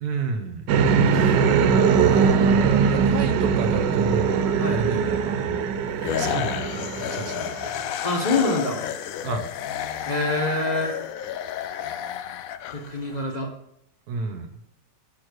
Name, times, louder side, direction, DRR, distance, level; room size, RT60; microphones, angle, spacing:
voice 1, 0.0-0.7 1.1-1.4 2.9-5.7 6.2-7.9 9.2-9.5 14.1-14.5, right 4 dB, 70° right, 6 dB, 1.4 m, -31 dB
sound 1, 0.7-7.7, right 6 dB, 90° right, 1.3 m, -21 dB
voice 2, 0.9-1.5 4.6-4.8 8.0-8.8 10.0-10.9 12.7-13.5, left 2 dB, 25° left, -1 dB, 1.3 m, -25 dB
sound 2, 6.0-13.2, left 10 dB, 70° left, 0.8 m, -31 dB
6.2 x 6.0 x 6.5 m, 0.73 s
omnidirectional pair, 1.9 m